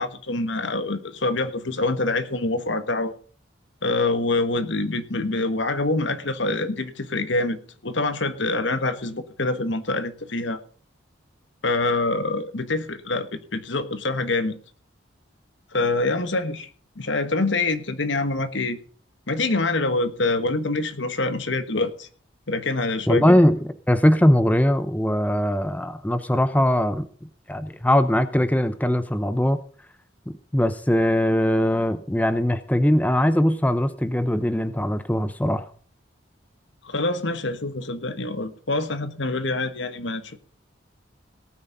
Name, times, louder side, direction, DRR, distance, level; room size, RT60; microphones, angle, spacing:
voice 1, 0.0-3.1 3.8-10.6 11.6-14.5 15.7-16.7 17.0-18.8 19.3-22.1 22.5-23.4 36.8-40.4, left 2 dB, 70° left, 10 dB, 1.4 m, -25 dB
voice 2, 23.1-27.1 27.5-29.6 30.5-35.7, equal, 10° left, 11 dB, 0.7 m, -21 dB
18.0 x 9.6 x 4.0 m, 0.43 s
head